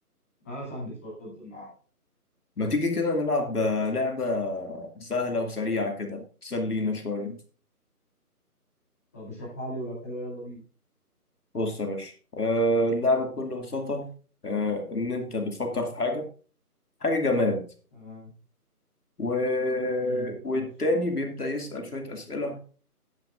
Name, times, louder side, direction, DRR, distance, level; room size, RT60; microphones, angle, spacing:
voice 1, 0.4-1.7 9.1-10.6 17.9-18.3 20.0-20.6, equal, 10° left, -9 dB, 2.8 m, -38 dB
voice 2, 2.6-7.4 11.5-14.1 14.4-16.3 17.0-17.6 19.2-22.6, left 2 dB, 70° left, 4 dB, 2.6 m, -27 dB
12.0 x 10.5 x 2.6 m, 0.39 s
figure-of-eight pair, 180°, 47 cm